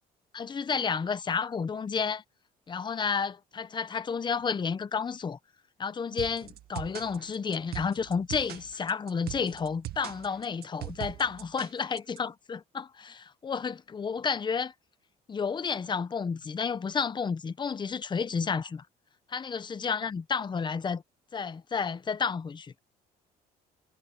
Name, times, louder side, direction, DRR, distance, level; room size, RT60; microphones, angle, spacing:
voice 1, 0.3-2.2 2.7-5.4 5.8-14.7 15.3-18.8 19.3-21.0 21.3-22.7, left 6 dB, 25° left, 0.9 m, -31 dB
sound 1, 6.2-12.2, right 14 dB, 70° right, 2.0 m, -40 dB
cardioid pair, 110°, 17 cm